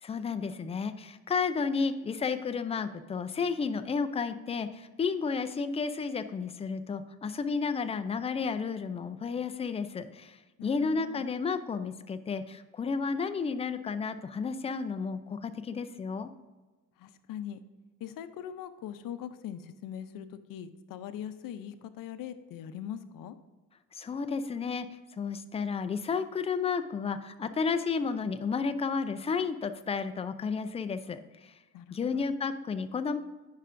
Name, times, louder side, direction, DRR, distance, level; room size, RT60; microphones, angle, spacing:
voice 1, 0.0-16.3 23.9-24.9 25.2-31.5 31.9-33.2, left 5 dB, 20° left, 10 dB, 0.4 m, -32 dB
voice 2, 10.6-11.3 17.0-17.6 18.0-23.4 31.7-32.3, left 9 dB, 70° left, 11 dB, 0.6 m, -41 dB
9.9 x 5.7 x 2.6 m, 1.2 s
cardioid pair, 115°, 35 cm